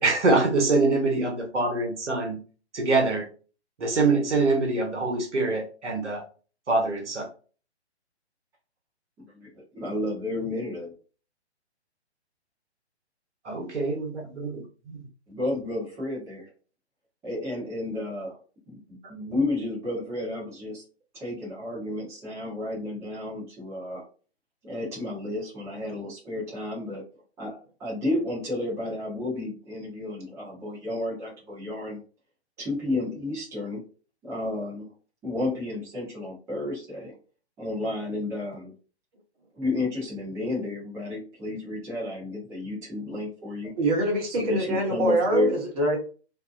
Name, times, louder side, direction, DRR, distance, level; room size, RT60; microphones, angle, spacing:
voice 1, 0.0-2.4 2.7-3.3 3.8-6.2 6.7-7.3 13.4-15.0, right 3 dB, 90° right, 1.1 m, -24 dB
voice 2, 9.7-10.9 15.3-16.5 17.2-18.4 18.7-20.8 21.1-24.0 24.6-27.0 27.4-32.0 32.6-33.8 34.2-34.9 35.2-37.1 37.6-38.7 39.5-43.7 44.3-45.5, left 2 dB, 10° right, 0.9 m, -31 dB
voice 3, 43.8-46.0, right 2 dB, 35° right, 1.0 m, -24 dB
2.7 x 2.1 x 2.4 m
hypercardioid pair, 145°, 34 cm